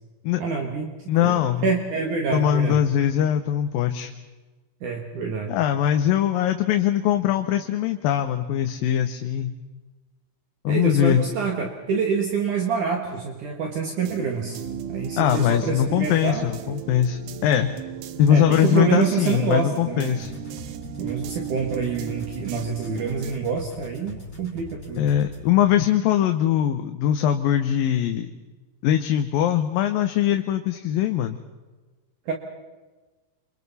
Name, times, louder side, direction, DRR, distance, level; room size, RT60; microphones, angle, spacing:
voice 1, 0.4-2.8 4.8-5.6 10.7-14.6 14.9-16.4 18.3-20.2 21.0-25.0 32.3-32.4, right 5 dB, 60° right, 1 dB, 3.0 m, -27 dB
voice 2, 1.1-1.7 2.3-4.1 5.5-9.5 10.6-11.2 15.2-17.7 18.2-20.3 25.0-28.3 28.8-31.4, left 10 dB, 75° left, 6 dB, 2.6 m, -21 dB
sound 1, 14.0-23.3, right 11 dB, 85° right, 2.9 m, -36 dB
sound 2, 20.2-25.4, left 2 dB, 10° left, 7.1 m, -40 dB
29.5 x 26.0 x 4.2 m, 1.3 s
omnidirectional pair, 4.3 m